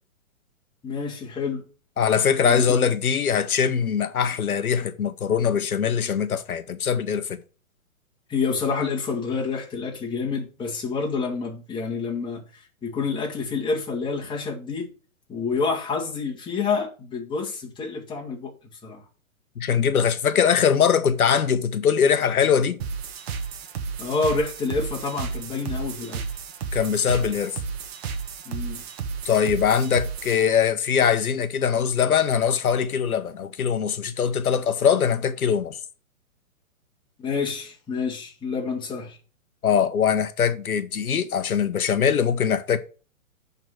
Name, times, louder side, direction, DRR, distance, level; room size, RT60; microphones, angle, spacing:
voice 1, 0.8-1.6 2.4-2.9 8.3-12.4 12.8-14.9 15.3-18.5 18.8-19.0 24.0-26.3 28.5-28.8 37.2-39.2, left 4 dB, 10° left, 2.0 m, -28 dB
voice 2, 2.0-7.4 19.6-22.8 26.7-27.6 29.2-35.8 39.6-42.8, left 7 dB, 85° left, 1.1 m, -22 dB
sound 1, 22.8-30.4, right 6 dB, 45° right, 1.2 m, -33 dB
10.5 x 4.0 x 6.1 m
hypercardioid pair, 140°, 42 cm